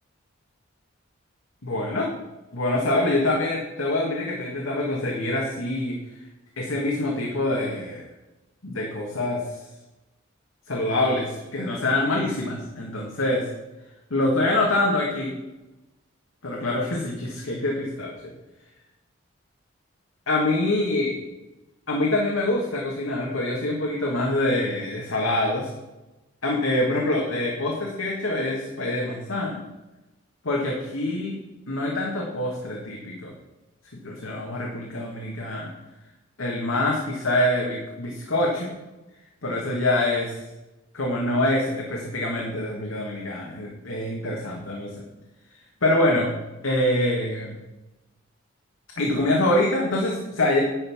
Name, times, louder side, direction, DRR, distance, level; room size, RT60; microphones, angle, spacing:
voice 1, 1.6-2.1 2.5-6.0 6.6-8.0 8.6-9.4 10.7-13.5 14.1-15.3 16.4-18.1 20.3-21.1 21.9-25.7 26.4-29.6 30.4-31.4 31.7-33.3 34.0-35.7 36.4-38.7 39.4-40.4 40.9-44.9 45.8-46.3 46.6-47.6 49.0-50.6, left 1 dB, 85° left, -1 dB, 1.7 m, -25 dB
11.0 x 5.5 x 6.0 m, 1.0 s
head